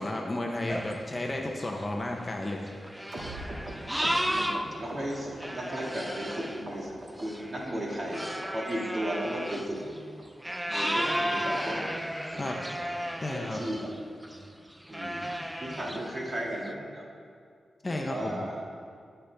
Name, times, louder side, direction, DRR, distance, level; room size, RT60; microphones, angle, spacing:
voice 1, 0.0-2.6 12.4-12.6 13.2-13.6 17.8-18.4, left 1 dB, 25° left, 1 dB, 0.8 m, -33 dB
sound 1, 0.7-4.7 5.1-14.0 14.2-14.5 14.9-16.7, equal, 5° right, 0.5 m, -34 dB
sound 2, 3.1-6.4 6.7-7.2 7.5-8.1 8.4-8.5 8.8-9.0 9.3-9.4 9.7-9.9 10.2-10.3 10.5-10.8 11.1-11.2 11.4-11.6 12.0-12.1 12.3-12.5 12.8-12.9, right 1 dB, 55° right, 2.1 m, -41 dB
voice 2, 4.3-7.0 7.2-9.8 10.7-11.9 12.3-12.6 13.2-13.9 14.9-17.0 17.8-18.6, right 1 dB, 30° right, -3 dB, 2.2 m, -35 dB
20.0 x 6.9 x 3.5 m, 2.2 s
wide cardioid pair, 135°, 0 cm